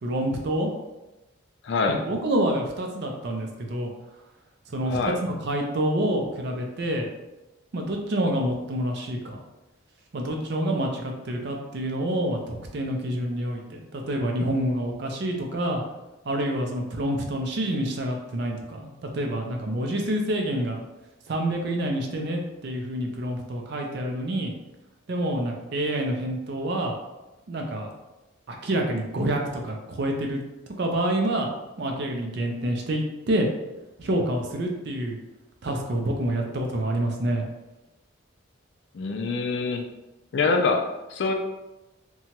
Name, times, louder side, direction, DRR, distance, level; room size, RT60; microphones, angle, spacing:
voice 1, 0.0-0.7 1.9-3.9 4.7-7.1 7.7-9.4 10.1-15.8 16.3-20.8 21.3-24.5 25.1-26.9 27.5-27.9 28.5-30.4 30.8-31.5 31.8-33.5 34.0-35.2 35.6-37.4, right 1 dB, 55° right, 2 dB, 0.4 m, -27 dB
voice 2, 1.6-2.0 4.9-5.2 38.9-39.8 40.3-41.3, left 4 dB, 60° left, 4 dB, 0.4 m, -25 dB
2.8 x 2.3 x 2.8 m, 1.0 s
head